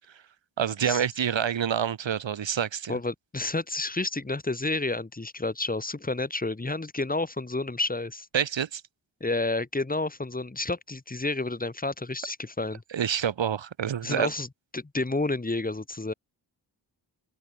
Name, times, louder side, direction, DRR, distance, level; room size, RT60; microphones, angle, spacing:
voice 1, 0.6-3.0 8.3-8.8 12.9-14.3, right 8 dB, 80° right, 3.8 m, -27 dB
voice 2, 2.9-8.3 9.2-12.8 14.0-14.5 14.7-16.1, left 2 dB, 20° left, 2.4 m, -30 dB
cardioid pair, 70°, 44 cm